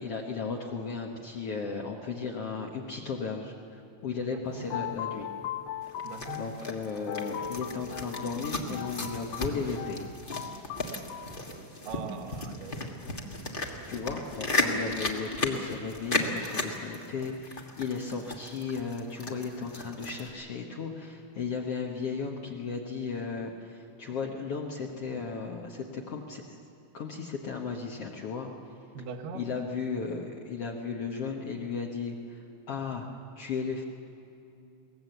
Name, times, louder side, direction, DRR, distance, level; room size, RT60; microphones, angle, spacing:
voice 1, 0.0-5.3 6.3-10.0 13.9-26.6 26.9-28.5 29.3-33.1 33.4-33.8, left 5 dB, 60° left, 0 dB, 1.8 m, -35 dB
voice 2, 4.3-4.7 6.0-6.5 11.9-13.0 28.9-29.5, right 5 dB, 85° right, 6 dB, 2.9 m, -41 dB
sound 1, 4.5-11.4, left 9 dB, 75° left, 2.1 m, -39 dB
sound 2, 5.8-20.3, left 2 dB, 40° left, 0.7 m, -35 dB
22.0 x 18.0 x 8.0 m, 2.7 s
omnidirectional pair, 3.7 m